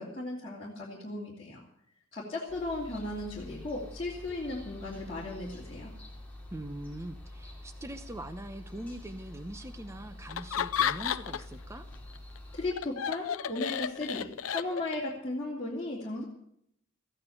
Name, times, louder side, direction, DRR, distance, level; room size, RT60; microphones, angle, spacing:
voice 1, 0.0-1.6 2.1-5.9 12.5-16.2, left 2 dB, 25° left, -6 dB, 2.9 m, -36 dB
sound 1, 2.5-12.7, left 1 dB, 5° left, 2.9 m, -47 dB
voice 2, 6.5-11.9, right 1 dB, 15° right, 7 dB, 0.8 m, -42 dB
Laughter, 10.3-11.6 11.9-15.1, left 8 dB, 75° left, 0.6 m, -32 dB
15.0 x 9.5 x 8.6 m, 0.72 s
head